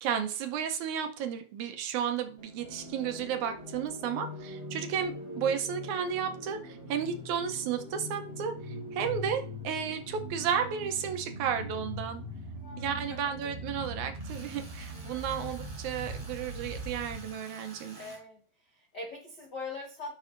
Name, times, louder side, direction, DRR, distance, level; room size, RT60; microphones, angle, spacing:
voice 1, 0.0-12.2 12.8-18.1, right 8 dB, 75° right, 1.9 m, -33 dB
sound 1, 2.4-17.3, equal, 10° right, 3.4 m, -41 dB
voice 2, 12.5-13.3 14.9-15.5 17.9-18.4 18.7-20.1, left 3 dB, 80° left, 0.9 m, -43 dB
Tools, 14.2-18.2, right 3 dB, 50° right, 4.4 m, -51 dB
11.5 x 6.1 x 2.5 m
omnidirectional pair, 3.8 m